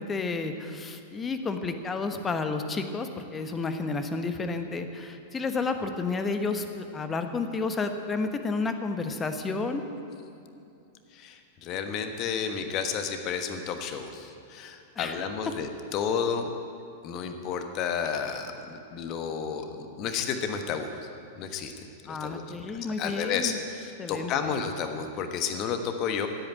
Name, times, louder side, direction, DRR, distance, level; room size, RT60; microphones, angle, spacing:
voice 1, 0.0-9.8 15.0-15.3 22.1-23.6 24.0-24.3, left 4 dB, 20° left, 7 dB, 1.2 m, -31 dB
voice 2, 11.1-16.5 17.0-21.1 21.3-22.4 23.0-26.3, left 6 dB, 35° left, 7 dB, 1.3 m, -31 dB
16.5 x 8.8 x 9.4 m, 2.6 s
figure-of-eight pair, 95°, 0 cm